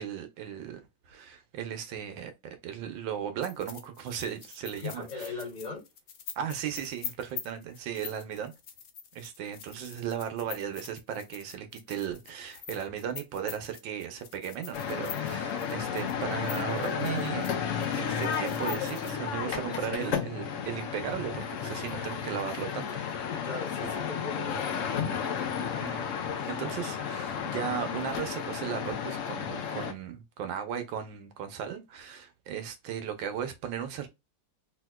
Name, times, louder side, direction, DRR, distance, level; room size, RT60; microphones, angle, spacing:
voice 1, 0.0-5.3 6.4-8.5 9.1-17.5 17.9-22.9 23.8-23.9 25.8-26.1 26.5-34.1, right 8 dB, 75° right, 1.4 m, -36 dB
sound 1, 3.4-17.5 17.8-19.1, left 8 dB, 65° left, 1.0 m, -44 dB
voice 2, 4.7-5.8 23.3-25.2, left 4 dB, 30° left, 0.8 m, -39 dB
sound 2, 14.7-29.9, left 7 dB, 85° left, 0.6 m, -33 dB
3.4 x 2.8 x 2.2 m
omnidirectional pair, 2.1 m